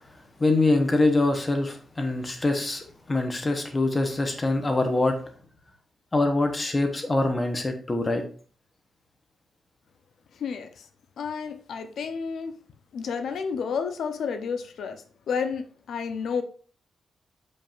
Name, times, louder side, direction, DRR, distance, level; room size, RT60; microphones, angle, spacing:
voice 1, 0.4-5.2 6.1-8.2, left 2 dB, 20° left, 1.0 m, -24 dB
voice 2, 10.3-10.9 11.2-12.5 12.9-16.4, left 6 dB, 70° left, 0.8 m, -31 dB
7.0 x 5.3 x 2.6 m
wide cardioid pair, 170°, 0 cm